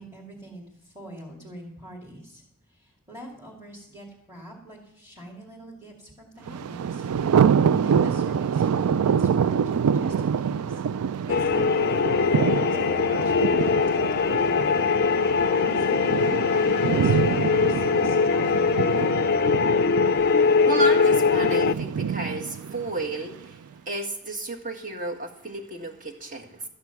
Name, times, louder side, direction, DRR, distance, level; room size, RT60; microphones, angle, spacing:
voice 1, 0.0-2.4 2.7-7.1 7.7-10.8 11.3-14.8 15.5-18.8, right 1 dB, 15° right, -5 dB, 2.4 m, -45 dB
Thunder, 6.5-23.4, right 7 dB, 80° right, 0.4 m, -26 dB
sound 1, 11.3-21.7, left 5 dB, 45° left, 0.4 m, -22 dB
voice 2, 20.2-23.6 23.9-26.6, right 2 dB, 40° right, 4 dB, 1.8 m, -32 dB
13.0 x 9.4 x 5.8 m, 0.83 s
head